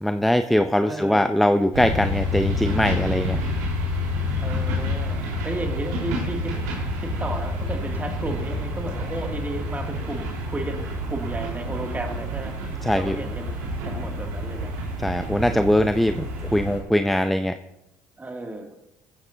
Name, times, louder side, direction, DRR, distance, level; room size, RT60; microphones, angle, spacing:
voice 1, 0.0-3.4 12.8-13.2 15.0-17.6, left 1 dB, ahead, 9 dB, 0.6 m, -21 dB
voice 2, 0.8-1.3 4.4-6.6 7.0-12.6 12.9-13.6 13.9-14.7 18.2-18.8, right 2 dB, 20° right, 2 dB, 2.6 m, -33 dB
sound 1, 1.7-16.8, left 1 dB, 85° right, 4.4 m, -28 dB
16.0 x 14.5 x 2.9 m, 0.91 s
hypercardioid pair, 70°, 9 cm